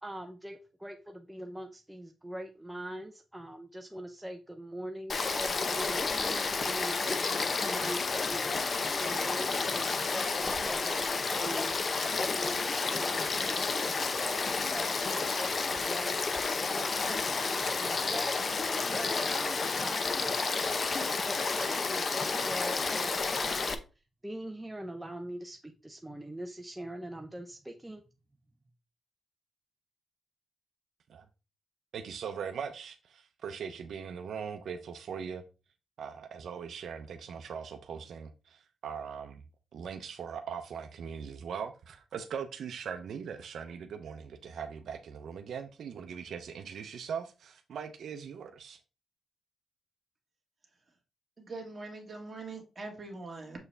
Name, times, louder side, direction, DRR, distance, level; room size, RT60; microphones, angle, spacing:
voice 1, 0.0-16.2 16.7-18.4 18.8-23.8 24.2-28.0, right 1 dB, 5° right, 0.5 m, -42 dB
Frog / Stream, 5.1-23.7, left 4 dB, 40° left, 0.7 m, -31 dB
voice 2, 31.9-35.4 36.0-39.4 39.7-48.8, right 7 dB, 70° right, 0.6 m, -40 dB
voice 3, 51.4-53.6, right 3 dB, 25° right, 2.0 m, -42 dB
7.0 x 4.5 x 3.3 m
wide cardioid pair, 130°, 0 cm